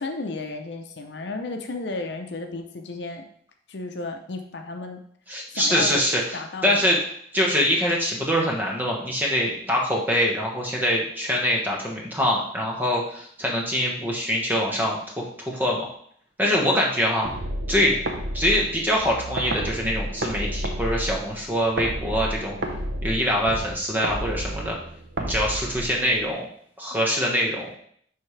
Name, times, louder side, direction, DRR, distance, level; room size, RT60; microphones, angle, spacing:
voice 1, 0.0-3.3 3.7-5.0 5.5-6.0 6.3-6.8, left 3 dB, 70° left, 4 dB, 0.7 m, -33 dB
voice 2, 5.3-6.2 6.6-7.0 7.3-15.9 16.4-17.3 17.7-18.0 18.3-22.5 23.0-24.8 25.2-26.5 26.8-27.7, equal, 10° right, -2 dB, 1.3 m, -24 dB
sound 1, 17.2-26.3, right 1 dB, 70° right, 1.0 m, -31 dB
10.5 x 3.6 x 3.3 m, 0.64 s
head